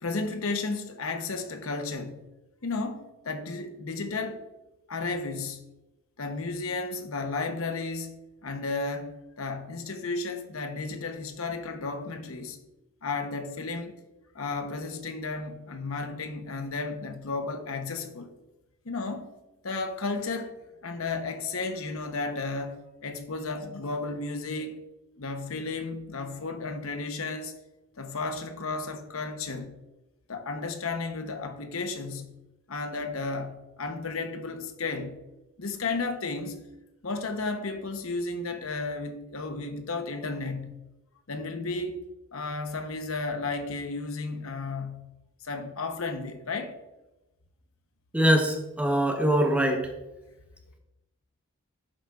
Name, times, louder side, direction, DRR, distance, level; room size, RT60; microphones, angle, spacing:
voice 1, 0.0-2.2 2.6-4.4 4.9-5.6 6.2-12.6 13.0-13.9 14.3-18.3 18.8-19.3 19.6-20.5 20.8-24.8 25.2-27.5 28.0-29.8 30.3-32.3 32.7-35.2 35.6-36.6 37.0-40.8 41.3-42.0 42.3-45.1 45.4-46.7, left 3 dB, 75° left, 0.9 m, -33 dB
voice 2, 48.1-49.9, equal, 5° right, 0.9 m, -23 dB
11.0 x 8.0 x 2.4 m
head